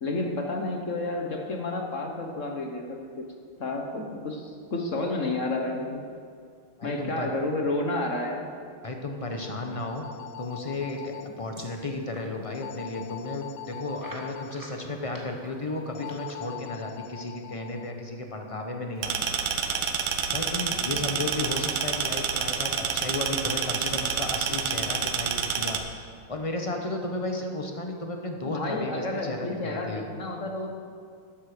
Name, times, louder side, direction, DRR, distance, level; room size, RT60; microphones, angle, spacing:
voice 1, 0.0-3.3 3.6-6.1 6.8-8.5 28.5-30.7, left 2 dB, 45° left, 2 dB, 1.2 m, -30 dB
voice 2, 6.8-7.3 8.8-10.0 10.4-19.3 20.3-26.0 26.3-30.0, left 2 dB, 30° left, 3 dB, 0.7 m, -34 dB
sound 1, 9.3-11.3 12.5-14.5 16.0-17.9, left 13 dB, 75° left, 1.1 m, -43 dB
sound 2, 10.8-12.3 12.8-12.9 13.1-13.2 14.0-16.5, right 1 dB, 10° right, 1.6 m, -48 dB
sound 3, 19.0-25.8, right 7 dB, 80° right, 1.7 m, -28 dB
13.5 x 11.0 x 5.1 m, 2.2 s
omnidirectional pair, 2.2 m